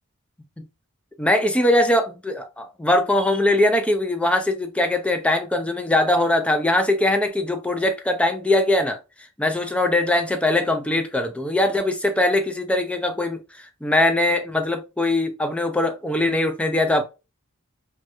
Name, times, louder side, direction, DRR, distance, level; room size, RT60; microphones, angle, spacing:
voice 1, 1.2-9.0 9.4-17.0, left 1 dB, 5° left, 0.4 m, -21 dB
3.1 x 2.3 x 2.9 m
head